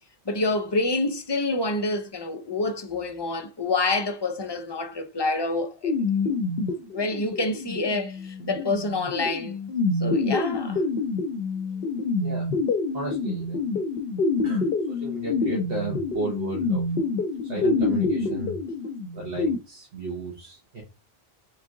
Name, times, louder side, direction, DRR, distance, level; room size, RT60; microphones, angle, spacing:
voice 1, 0.3-5.9 6.9-9.6 10.0-10.8, left 2 dB, 30° left, 0.5 m, -27 dB
sound 1, 5.8-19.6, left 3 dB, 65° left, 0.7 m, -27 dB
voice 2, 12.9-13.6 14.4-16.8 17.4-18.6 19.1-20.8, right 2 dB, 65° right, 1.3 m, -34 dB
3.7 x 3.2 x 3.6 m
omnidirectional pair, 1.1 m